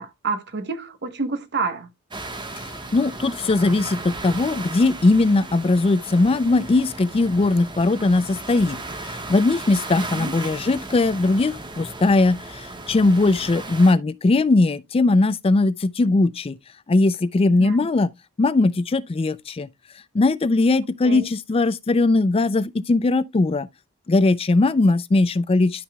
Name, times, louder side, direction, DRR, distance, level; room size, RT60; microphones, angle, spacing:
voice 1, 0.0-1.9 9.9-10.3 17.6-17.7 21.0-21.2, right 4 dB, 55° right, 1.2 m, -28 dB
sound 1, 2.1-13.9, right 2 dB, 20° right, 1.3 m, -36 dB
voice 2, 2.6-16.6 16.9-18.1 18.4-19.7 20.1-23.7 24.1-25.8, left 2 dB, 25° left, 0.4 m, -20 dB
12.0 x 5.6 x 2.3 m
head